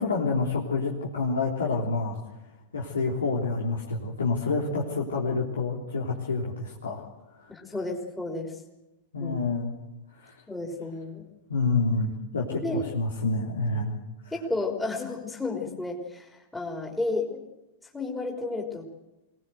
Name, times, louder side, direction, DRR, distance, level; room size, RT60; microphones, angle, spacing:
voice 1, 0.0-2.2 2.7-7.1 7.3-7.5 9.1-9.8 10.1-10.4 11.5-14.0 14.2-14.3, left 3 dB, 75° left, -3 dB, 3.5 m, -28 dB
voice 2, 7.5-8.5 9.2-9.4 10.5-11.2 12.6-12.8 14.3-17.4 17.9-18.8, left 2 dB, 10° left, 0 dB, 3.8 m, -32 dB
25.0 x 19.0 x 8.0 m, 0.99 s
figure-of-eight pair, 95°, 0 cm